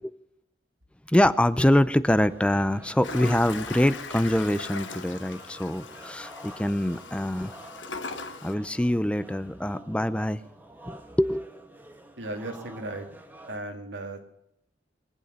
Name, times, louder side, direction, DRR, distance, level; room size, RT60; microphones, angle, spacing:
voice 1, 1.1-7.5 8.4-10.4 10.8-11.4, left 1 dB, 5° left, 0.5 m, -24 dB
sound 1, 2.3-13.6, right 1 dB, 10° right, 1.4 m, -49 dB
Toilet flush, 3.0-8.5, left 4 dB, 90° left, 1.3 m, -39 dB
voice 2, 12.2-13.1 13.5-14.2, right 2 dB, 75° right, 2.4 m, -36 dB
23.0 x 8.3 x 6.6 m
head